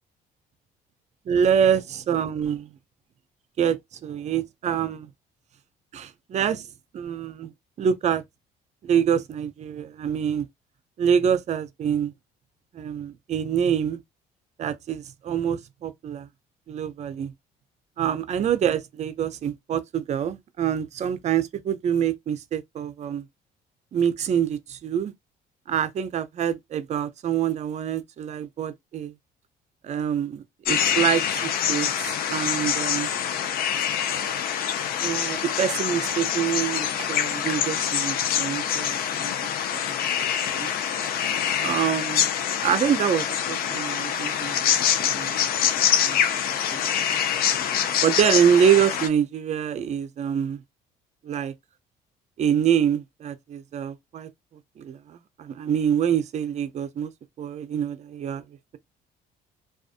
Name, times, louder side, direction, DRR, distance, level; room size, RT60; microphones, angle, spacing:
voice 1, 1.3-2.7 3.6-5.1 5.9-6.7 6.9-7.5 7.8-8.2 8.8-10.5 11.0-12.1 12.7-14.0 14.6-16.3 16.7-17.3 18.0-23.2 23.9-25.1 25.7-29.1 29.8-33.1 35.0-39.3 40.5-40.7 41.6-42.3 42.6-44.7 45.0-45.7 46.0-46.2 48.0-50.6 51.2-51.5 52.4-54.3 54.8-57.1 57.4-58.4, right 8 dB, 40° right, 0.5 m, -25 dB
sound 1, 30.6-49.1, left 9 dB, 60° left, 0.5 m, -25 dB
2.5 x 2.3 x 2.4 m
cardioid pair, 110°, 17 cm